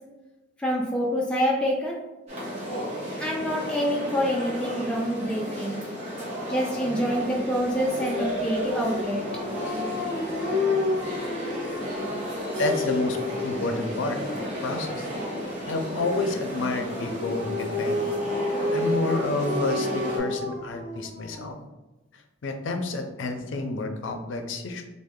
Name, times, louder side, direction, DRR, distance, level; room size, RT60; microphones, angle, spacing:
voice 1, 0.6-2.0 3.2-5.8 6.5-9.3, equal, 5° left, -3 dB, 0.3 m, -26 dB
sound 1, 2.3-20.2, equal, 35° right, 1.0 m, -33 dB
Dog, 7.9-13.8 16.9-21.5, left 2 dB, 15° right, 1.2 m, -30 dB
voice 2, 12.6-13.2 13.4-14.2 14.6-15.1 15.7-18.0 18.7-21.6 22.1-24.8, left 2 dB, 85° left, 5 dB, 0.5 m, -29 dB
3.1 x 2.0 x 3.6 m, 1.1 s
head